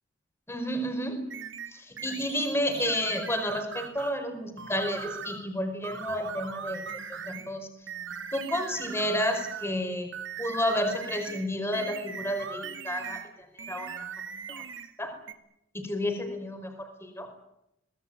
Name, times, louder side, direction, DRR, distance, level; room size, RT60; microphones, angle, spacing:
voice 1, 0.5-1.2 1.7-6.8 7.3-7.7 8.3-10.1 10.4-13.2 13.7-13.9 14.5-14.6 15.0-15.1 15.7-17.3, equal, 10° left, 6 dB, 5.0 m, -31 dB
sound 1, 1.3-4.2 4.6-5.5 5.8-7.5 7.9-9.8 10.1-13.3 13.6-14.9 15.3-15.4, right 6 dB, 65° right, 2.6 m, -39 dB
24.5 x 20.0 x 9.3 m, 0.83 s
head